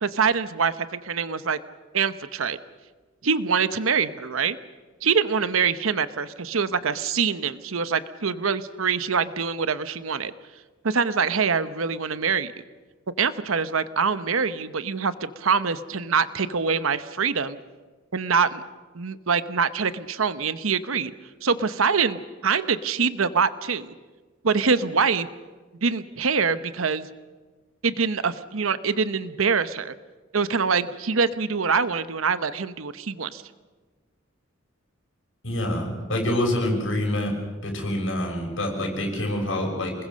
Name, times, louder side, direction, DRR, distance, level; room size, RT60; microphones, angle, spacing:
voice 1, 0.0-1.6 1.9-2.6 3.2-4.6 5.0-10.3 10.8-12.5 13.2-17.6 18.1-18.6 18.9-21.1 21.4-23.9 24.4-25.3 25.8-27.1 27.8-29.9 30.3-33.4, right 5 dB, 90° right, 13 dB, 0.9 m, -24 dB
voice 2, 35.4-37.3 37.6-39.9, left 1 dB, 70° left, 1 dB, 6.7 m, -26 dB
28.0 x 20.5 x 6.5 m, 1.3 s
head